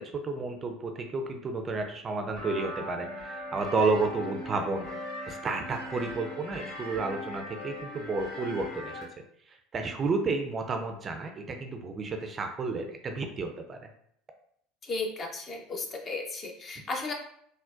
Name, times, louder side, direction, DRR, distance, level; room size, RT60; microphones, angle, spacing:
voice 1, 0.0-4.9 5.3-9.0 9.5-13.9, right 3 dB, 35° right, 5 dB, 0.4 m, -31 dB
sound 1, 2.4-9.0, left 1 dB, 70° left, 1.5 m, -39 dB
voice 2, 14.8-17.1, left 3 dB, 35° left, 2 dB, 0.6 m, -35 dB
3.7 x 2.1 x 2.4 m, 0.67 s
hypercardioid pair, 80°, 0 cm